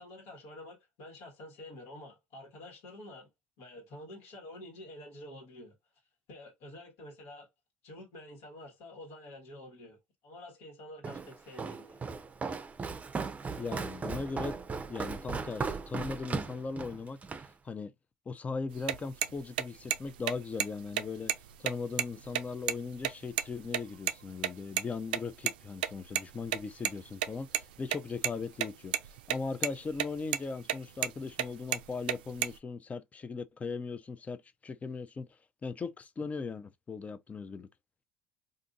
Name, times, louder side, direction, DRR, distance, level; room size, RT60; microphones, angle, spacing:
voice 1, 0.0-3.3 3.6-5.7 6.3-7.5 7.8-12.0, left 1 dB, 70° left, 1.5 m, -49 dB
Walk footsteps, 11.0-17.5, right 4 dB, 30° right, 0.6 m, -37 dB
voice 2, 13.6-14.6 14.9-17.2 17.6-17.9 18.3-21.3 21.6-35.3 35.6-37.7, left 4 dB, 30° left, 0.5 m, -38 dB
sound 1, 18.7-23.8 24.1-24.2 24.4-24.5 24.8-24.9 25.1-25.2 25.5-25.6 25.8-26.9 27.2-27.6 27.9-28.7 28.9-29.4 29.6-30.1 30.3-30.4 30.7-31.1 31.4-32.6, right 11 dB, 90° right, 0.3 m, -30 dB
2.6 x 2.5 x 3.8 m
hypercardioid pair, 75°, 5 cm